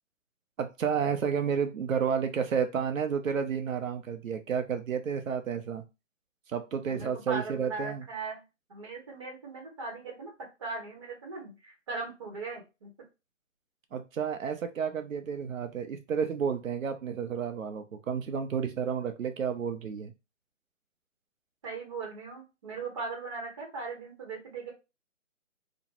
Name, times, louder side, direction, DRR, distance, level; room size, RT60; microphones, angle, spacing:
voice 1, 0.6-5.8 6.5-8.0 13.9-20.1, right 7 dB, 85° right, 7 dB, 0.7 m, -31 dB
voice 2, 6.8-8.4 8.7-10.3 10.6-12.9 21.6-24.7, right 4 dB, 25° right, -2 dB, 0.9 m, -39 dB
3.0 x 2.1 x 2.9 m, 0.27 s
hypercardioid pair, 160°, 39 cm